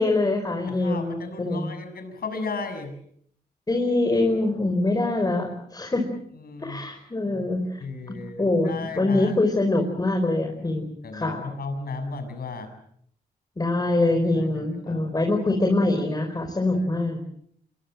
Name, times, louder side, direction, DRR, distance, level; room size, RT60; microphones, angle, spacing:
voice 1, 0.0-1.7 3.7-6.1 6.6-7.8 8.1-11.4 13.6-17.2, left 2 dB, 20° left, 3 dB, 5.2 m, -24 dB
voice 2, 0.7-2.9 6.3-6.8 7.3-7.4 7.8-9.4 11.0-12.7 14.4-15.3 16.7-16.9, left 4 dB, 65° left, 8 dB, 7.5 m, -35 dB
27.5 x 24.5 x 7.8 m, 0.69 s
wide cardioid pair, 125°, 17 cm